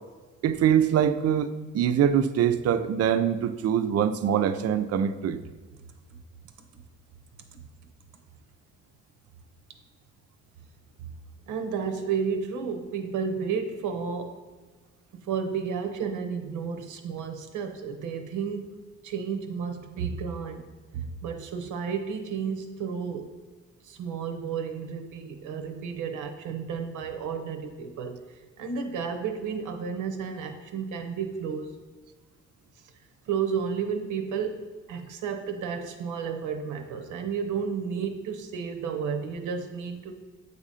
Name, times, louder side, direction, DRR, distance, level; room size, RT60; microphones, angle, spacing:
voice 1, 0.4-5.4, right 9 dB, 55° right, 12 dB, 0.4 m, -24 dB
voice 2, 11.5-14.4 15.1-18.7 19.0-20.7 20.9-23.4 23.8-28.2 28.6-31.8 33.3-40.1, right 6 dB, 85° right, 5 dB, 0.7 m, -32 dB
8.1 x 2.8 x 4.8 m, 1.3 s
cardioid pair, 90°, 30 cm